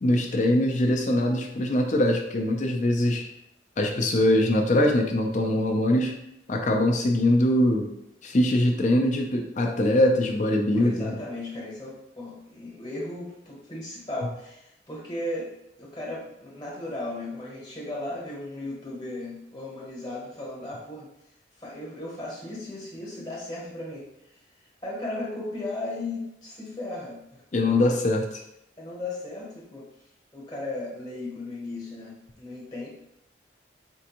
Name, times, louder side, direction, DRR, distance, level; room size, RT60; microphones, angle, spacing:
voice 1, 0.0-3.3 3.8-6.2 6.5-7.9 8.2-11.2 27.5-28.3, left 1 dB, 45° left, 3 dB, 0.5 m, -22 dB
voice 2, 10.7-15.5 15.8-21.1 21.6-24.1 24.8-27.4 27.7-28.0 28.8-29.9 30.3-32.9, left 2 dB, 25° left, -5 dB, 1.0 m, -36 dB
4.3 x 2.5 x 2.9 m, 0.81 s
head